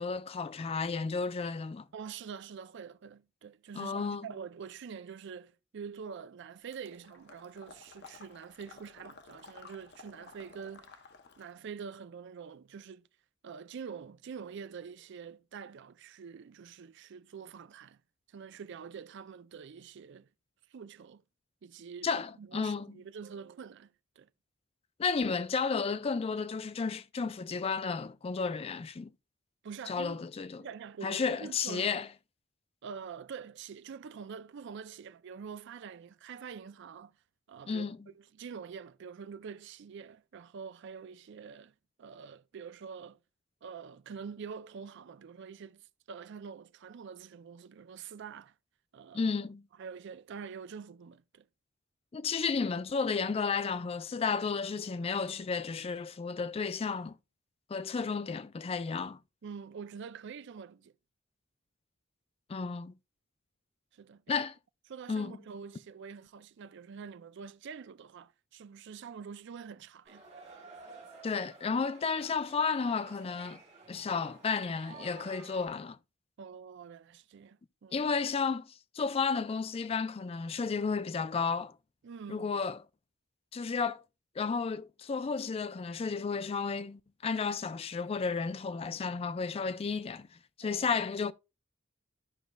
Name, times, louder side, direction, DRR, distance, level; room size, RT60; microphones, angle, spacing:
voice 1, 0.0-1.9 3.8-4.3 22.0-23.0 25.0-29.1 29.9-30.7 31.0-32.1 37.7-38.0 49.1-49.6 52.1-57.2 57.7-59.2 62.5-62.9 64.3-64.5 65.1-65.4 71.2-73.6 73.9-76.0 77.9-81.8 82.3-82.8 83.5-84.0 84.4-90.3 90.6-91.3, left 5 dB, 30° left, 0.3 m, -32 dB
voice 2, 1.9-11.1 11.4-13.1 13.4-18.0 18.3-20.3 20.7-21.2 21.6-24.3 29.6-30.2 30.6-32.0 32.8-37.2 37.5-43.2 43.6-48.5 48.9-49.3 49.8-51.5 59.4-60.9 63.9-64.4 64.9-70.2 76.4-78.1 82.0-82.5 90.6-90.9, right 6 dB, 60° right, 0.4 m, -46 dB
Water / Liquid, 6.7-11.6, left 4 dB, 55° left, 0.8 m, -54 dB
sound 1, 70.1-75.7, right 4 dB, 35° right, 2.5 m, -52 dB
14.0 x 5.2 x 2.3 m
head